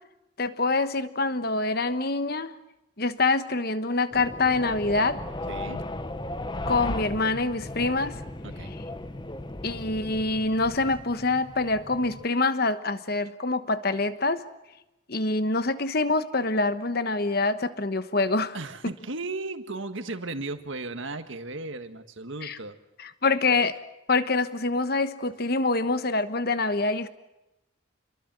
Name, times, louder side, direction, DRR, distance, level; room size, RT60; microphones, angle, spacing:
voice 1, 0.4-2.5 3.0-5.2 6.7-8.2 9.6-14.4 15.1-18.5 22.4-22.6 23.0-23.8 24.1-27.1, left 3 dB, 50° left, 11 dB, 1.2 m, -25 dB
sound 1, 4.1-12.3, left 1 dB, 20° left, 0.8 m, -36 dB
voice 2, 5.5-5.8 8.4-8.7 18.5-22.8, right 2 dB, 70° right, 8 dB, 1.7 m, -35 dB
27.5 x 22.5 x 7.6 m, 0.93 s
head